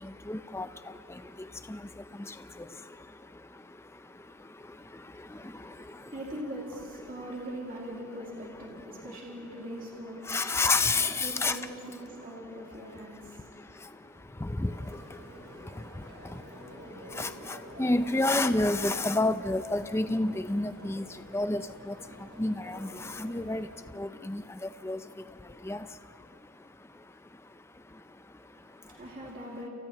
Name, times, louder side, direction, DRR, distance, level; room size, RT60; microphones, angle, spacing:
voice 1, 0.0-6.1 7.2-7.3 8.5-9.2 10.2-11.6 12.2-29.3, left 2 dB, 10° left, 10 dB, 0.4 m, -33 dB
voice 2, 5.4-10.6 11.2-14.4 28.4-29.7, equal, 40° right, -4 dB, 2.5 m, -42 dB
sound 1, 14.6-23.7, equal, 60° right, 5.9 m, -49 dB
29.5 x 29.5 x 3.0 m, 2.4 s
head